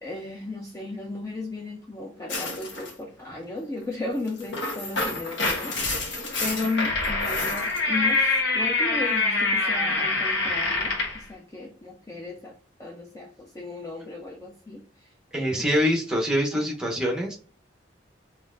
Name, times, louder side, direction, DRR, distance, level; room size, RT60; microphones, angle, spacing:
voice 1, 0.0-15.7 16.5-16.6, left 2 dB, 15° left, -1 dB, 0.5 m, -35 dB
sound 1, 2.3-2.9 4.3-11.2, left 3 dB, 75° left, 1.0 m, -26 dB
voice 2, 15.3-17.4, equal, 5° right, -1 dB, 0.8 m, -24 dB
3.9 x 3.2 x 2.5 m, 0.42 s
head